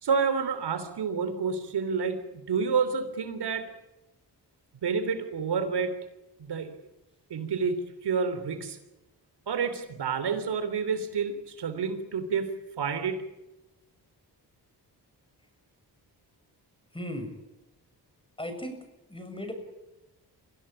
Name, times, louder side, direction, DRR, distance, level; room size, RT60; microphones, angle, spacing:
voice 1, 0.0-3.7 4.8-5.9 6.4-6.7 7.3-8.8 9.5-12.5 12.8-13.2, right 5 dB, 75° right, 10 dB, 3.4 m, -29 dB
voice 2, 16.9-17.3 18.4-18.8 19.1-19.5, equal, 15° left, 7 dB, 7.3 m, -36 dB
25.0 x 16.0 x 8.9 m, 0.99 s
cardioid pair, 70°, 40 cm